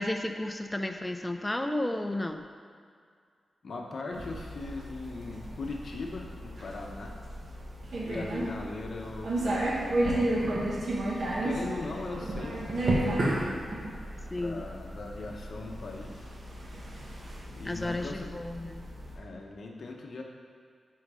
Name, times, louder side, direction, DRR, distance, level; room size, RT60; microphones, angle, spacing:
voice 1, 0.0-2.4 8.1-8.5 14.3-14.6 17.6-18.9, left 1 dB, 10° left, 5 dB, 0.5 m, -33 dB
voice 2, 3.6-7.2 8.0-10.7 11.4-13.3 14.4-16.3 17.6-18.3 19.1-20.2, left 3 dB, 60° left, 0 dB, 0.9 m, -40 dB
sound 1, 4.1-19.2, right 1 dB, 55° right, 1.4 m, -33 dB
10.0 x 3.9 x 4.9 m, 2.2 s
wide cardioid pair, 120°, 0 cm